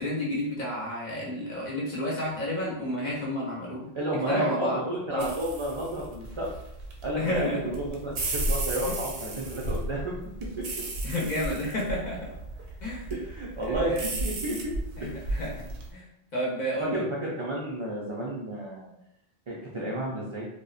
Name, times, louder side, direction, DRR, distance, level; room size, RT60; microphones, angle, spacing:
voice 1, 0.0-3.9 4.3-4.8 5.1-5.3 7.1-7.7 8.9-9.0 11.0-12.3 12.8-13.1 13.6-14.1 15.0-15.6 15.9-16.0 16.3-17.0, equal, 50° left, -5 dB, 0.8 m, -31 dB
voice 2, 3.9-6.5 7.0-10.1 13.1-13.9 14.2-14.7 15.0-15.5 16.8-18.9 19.5-20.5, right 1 dB, 55° right, -5 dB, 0.3 m, -32 dB
sound 1, 5.2-15.9, right 2 dB, 90° right, 0.8 m, -34 dB
2.6 x 2.1 x 2.4 m, 0.80 s
omnidirectional pair, 1.1 m